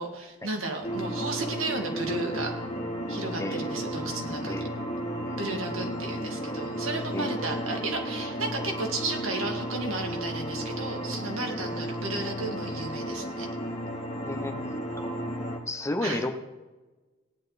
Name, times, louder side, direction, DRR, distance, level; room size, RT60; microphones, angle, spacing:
voice 1, 0.0-2.5 3.1-4.7 5.4-13.5 16.0-16.2, right 2 dB, 85° right, 2 dB, 2.2 m, -33 dB
sound 1, 0.8-15.6, equal, 35° left, 2.0 m, -33 dB
voice 2, 14.2-14.6 15.0-15.2 15.7-16.3, left 2 dB, 15° left, 6 dB, 0.8 m, -32 dB
17.0 x 10.5 x 4.1 m, 1.2 s
head